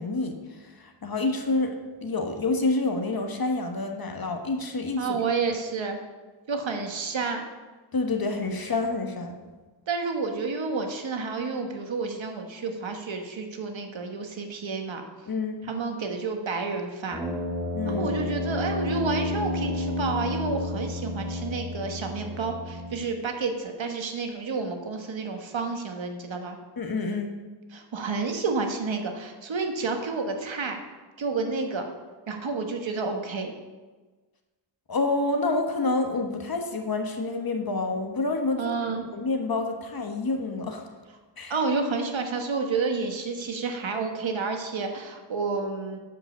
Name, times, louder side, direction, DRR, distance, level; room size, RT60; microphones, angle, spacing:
voice 1, 0.0-5.1 5.5-5.6 7.9-9.4 15.3-15.7 17.7-18.1 26.8-27.4 34.9-38.7 39.1-40.9 41.4-41.5, left 3 dB, 50° left, 4 dB, 1.3 m, -28 dB
voice 2, 5.0-6.0 6.5-7.4 9.9-15.0 15.6-17.2 17.8-26.6 27.7-30.8 31.2-31.9 32.3-33.5 38.6-39.1 41.5-46.0, right 4 dB, 75° right, 4 dB, 1.4 m, -30 dB
Brass instrument, 17.1-23.0, left 1 dB, 5° right, 2.7 m, -31 dB
10.5 x 5.3 x 7.0 m, 1.3 s
wide cardioid pair, 110°, 46 cm